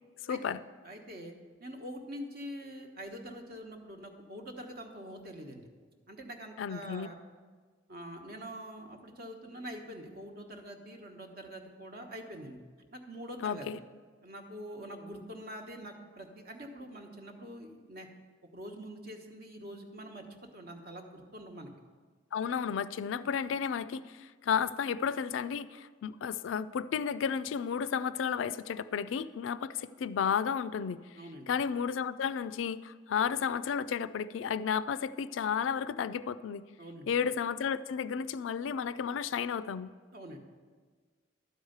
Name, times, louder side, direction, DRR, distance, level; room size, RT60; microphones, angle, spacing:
voice 1, 0.3-0.6 6.6-7.1 13.4-13.8 22.3-31.0 31.5-36.6 37.1-39.9, left 7 dB, 75° left, 15 dB, 0.3 m, -32 dB
voice 2, 0.8-1.3 1.6-5.7 6.1-7.2 7.9-12.6 12.9-13.7 14.2-18.1 18.5-20.2 20.5-21.7 31.2-31.5 36.8-37.1 40.1-40.4, equal, 50° right, 4 dB, 1.2 m, -45 dB
12.0 x 4.8 x 7.9 m, 1.5 s
head